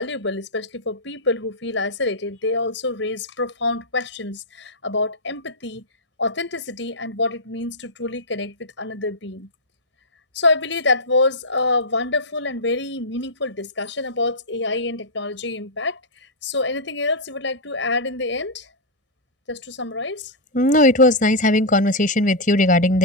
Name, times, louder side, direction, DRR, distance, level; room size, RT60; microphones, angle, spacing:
voice 1, 0.0-5.8 6.2-9.5 10.3-16.0 16.4-18.7 19.5-20.3, left 2 dB, 75° left, 5.5 m, -25 dB
voice 2, 20.5-23.0, left 1 dB, 45° left, 4.7 m, -17 dB
head